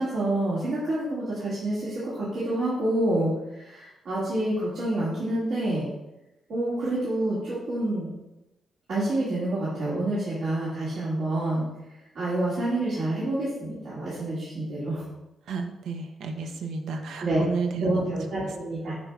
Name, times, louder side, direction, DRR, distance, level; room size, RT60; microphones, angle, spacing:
voice 1, 0.0-5.9 6.5-8.1 8.9-11.7 12.1-15.0 17.2-17.4 17.8-18.9, right 1 dB, 65° right, -10 dB, 2.1 m, -28 dB
voice 2, 15.5-18.2, right 4 dB, 85° right, 5 dB, 0.7 m, -32 dB
7.5 x 6.0 x 2.4 m, 0.97 s
cardioid pair, 135°, 0 cm